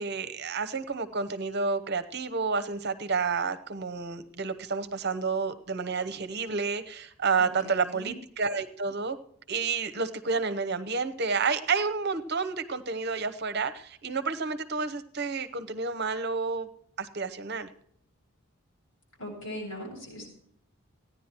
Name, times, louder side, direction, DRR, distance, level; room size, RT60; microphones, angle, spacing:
voice 1, 0.0-9.2 9.5-16.7 17.0-17.7, right 4 dB, 50° right, 10 dB, 0.9 m, -30 dB
voice 2, 7.4-8.1 19.2-20.3, equal, 70° left, -2 dB, 7.1 m, -40 dB
15.5 x 10.0 x 4.5 m, 0.65 s
head